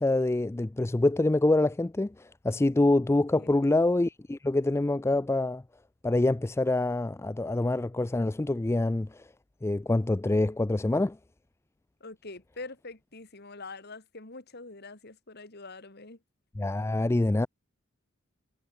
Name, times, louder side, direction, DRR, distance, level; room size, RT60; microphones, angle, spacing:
voice 1, 0.0-5.6 6.0-9.2 9.6-11.2 16.6-17.5, left 2 dB, 15° left, 0.3 m, -26 dB
voice 2, 3.3-3.7 12.0-16.2, left 3 dB, 50° left, 2.6 m, -44 dB
head